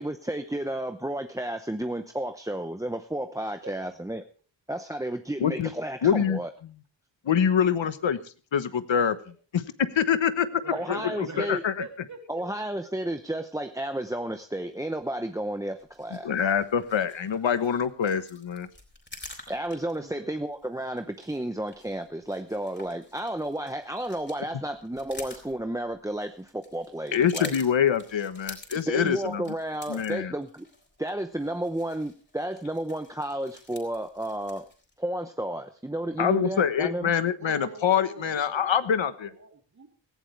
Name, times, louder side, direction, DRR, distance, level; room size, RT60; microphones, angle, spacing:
voice 1, 0.0-4.2 4.7-6.5 10.7-11.6 12.3-16.3 19.5-27.5 28.7-30.7 31.0-34.7 35.0-37.1, right 1 dB, 5° right, 7 dB, 0.8 m, -32 dB
voice 2, 3.4-3.8 9.2-9.3 10.5-12.5 20.0-20.3 37.4-39.9, right 3 dB, 40° right, 4 dB, 2.9 m, -44 dB
voice 3, 5.4-5.7 6.0-6.4 7.2-8.2 8.5-9.2 9.5-9.6 9.9-10.5 10.9-11.7 16.2-18.7 27.1-29.4 29.9-30.3 36.2-39.3, left 8 dB, 80° left, 12 dB, 1.2 m, -25 dB
sound 1, 15.8-34.9, left 2 dB, 25° left, 4.0 m, -49 dB
18.0 x 15.5 x 3.3 m, 0.37 s
wide cardioid pair, 145°, 45 cm